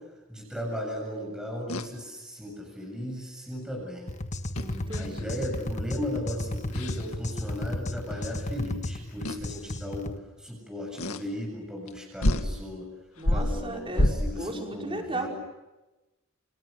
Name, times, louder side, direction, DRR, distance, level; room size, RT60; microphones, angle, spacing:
voice 1, 0.3-4.1 4.9-12.9 13.3-15.3, left 1 dB, 5° right, 0 dB, 7.7 m, -36 dB
sound 1, 1.7-1.9 4.5-5.2 5.7-6.0 6.7-7.1 8.2-8.3 9.2-9.5 11.0-11.2 11.9-12.0 12.2-12.5 13.2-14.5, left 1 dB, 85° left, 2.1 m, -28 dB
sound 2, 4.1-10.2, left 1 dB, 35° left, 1.5 m, -34 dB
voice 2, 4.6-5.4 13.2-15.3, right 2 dB, 25° right, 1 dB, 5.5 m, -36 dB
29.5 x 29.0 x 6.8 m, 1.1 s
head